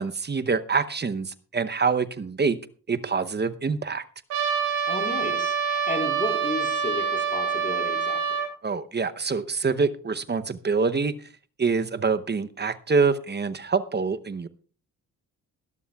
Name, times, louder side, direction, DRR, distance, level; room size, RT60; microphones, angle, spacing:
voice 1, 0.0-2.6 2.9-4.0 8.6-11.1 11.6-14.5, right 4 dB, 25° right, 12 dB, 0.8 m, -25 dB
Trumpet, 4.3-8.5, right 7 dB, 80° right, 4.3 m, -26 dB
voice 2, 4.9-8.2, left 2 dB, 20° left, 3 dB, 4.1 m, -33 dB
20.5 x 12.5 x 2.4 m, 0.40 s
supercardioid pair, 65°, 38 cm